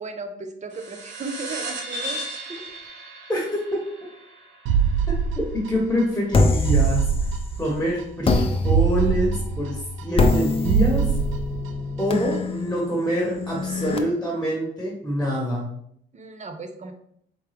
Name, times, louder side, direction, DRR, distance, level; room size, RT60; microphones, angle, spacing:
voice 1, 0.0-2.2 2.5-2.7 16.1-16.9, right 3 dB, 35° right, 6 dB, 0.8 m, -35 dB
sound 1, 0.7-5.6, right 1 dB, 65° right, 0.9 m, -36 dB
sound 2, 4.7-6.0 6.3-6.4 6.7-8.0 8.3-8.4 8.7-10.4 10.7-12.0 12.3-12.4, right 7 dB, 85° right, 0.4 m, -23 dB
voice 2, 5.7-7.1 7.6-11.2 12.0-15.7, equal, 5° left, -2 dB, 1.3 m, -25 dB
sound 3, 6.3-7.7 8.2-14.0, left 3 dB, 30° left, 0.6 m, -25 dB
4.6 x 3.4 x 3.4 m, 0.69 s
cardioid pair, 90°, 20 cm